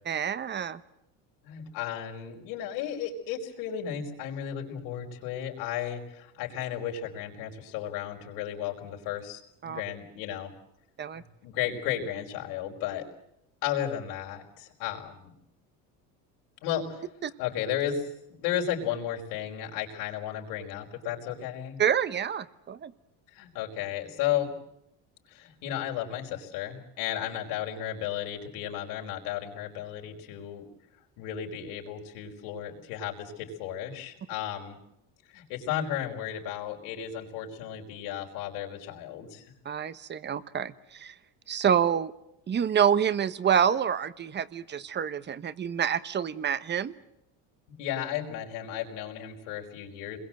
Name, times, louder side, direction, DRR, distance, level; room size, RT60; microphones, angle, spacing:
voice 1, 0.0-0.8 9.6-9.8 11.0-11.2 17.2-17.3 21.8-22.9 39.6-41.1 41.5-42.1 42.5-46.9, right 8 dB, 30° right, 15 dB, 1.1 m, -27 dB
voice 2, 1.4-10.5 11.1-13.0 13.6-15.3 16.6-16.8 17.4-21.8 23.3-24.5 25.3-30.7 31.2-34.8 35.3-39.4 47.8-50.2, left 10 dB, 80° left, 1 dB, 5.2 m, -34 dB
28.0 x 22.0 x 7.8 m, 0.81 s
cardioid pair, 130°, 38 cm